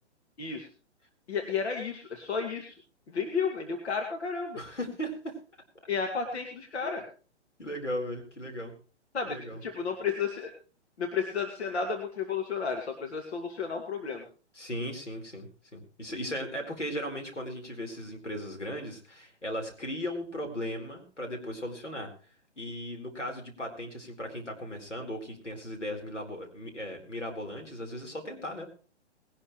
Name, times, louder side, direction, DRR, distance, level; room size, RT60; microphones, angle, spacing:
voice 1, 0.4-0.7 1.3-2.8 3.1-4.6 5.9-7.0 9.1-10.5 11.0-14.2, left 5 dB, 65° left, 3 dB, 2.3 m, -32 dB
voice 2, 4.5-5.4 6.8-6.9 7.6-8.7 9.3-9.6 14.6-22.1 22.6-28.7, equal, 90° left, 2 dB, 4.3 m, -37 dB
20.0 x 11.5 x 3.2 m, 0.36 s
figure-of-eight pair, 125°, 35 cm